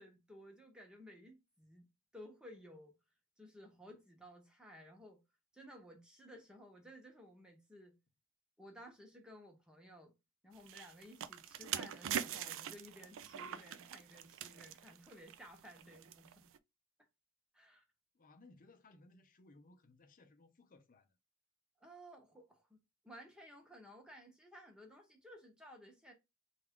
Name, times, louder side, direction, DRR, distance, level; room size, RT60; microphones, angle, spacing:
voice 1, 0.0-1.9 2.1-3.0 3.4-5.2 5.5-8.0 8.6-10.1 10.4-16.5 17.5-17.8 21.8-26.1, equal, 5° right, 0.9 m, -56 dB
sound 1, 10.6-16.6, right 10 dB, 65° right, 0.3 m, -43 dB
voice 2, 18.1-21.1, left 2 dB, 40° left, 0.6 m, -62 dB
3.5 x 2.4 x 3.5 m
head